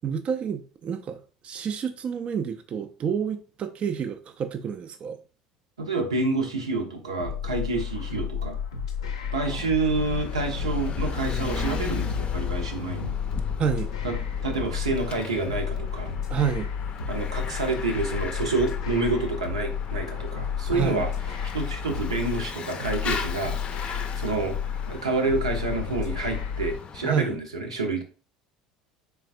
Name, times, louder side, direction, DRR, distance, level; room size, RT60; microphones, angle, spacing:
voice 1, 0.0-5.2 9.4-9.6 13.6-13.9 16.3-16.7 20.7-21.0 27.0-27.4, right 7 dB, 40° right, 0.4 m, -29 dB
voice 2, 5.8-8.6 9.3-13.1 14.0-14.2 14.4-16.1 17.1-21.1 21.5-23.6 23.9-24.6 24.9-28.0, right 3 dB, 85° right, 0.6 m, -28 dB
sound 1, 7.2-26.8, left 7 dB, 80° left, 0.6 m, -32 dB
Bicycle / Mechanisms, 9.7-27.3, left 6 dB, 35° left, 0.5 m, -36 dB
3.8 x 3.4 x 2.6 m
figure-of-eight pair, 70°, 3 cm